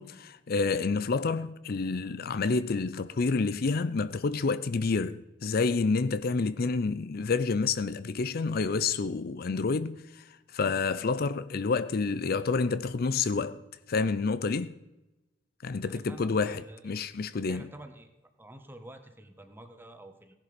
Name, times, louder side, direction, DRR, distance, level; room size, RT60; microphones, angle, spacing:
voice 1, 0.0-10.2 10.5-13.6 13.9-14.7 15.6-17.7, left 4 dB, 55° left, 0.5 m, -29 dB
voice 2, 15.9-17.0 17.5-18.1 18.4-20.3, right 1 dB, 10° right, 1.4 m, -48 dB
16.5 x 11.0 x 5.2 m
head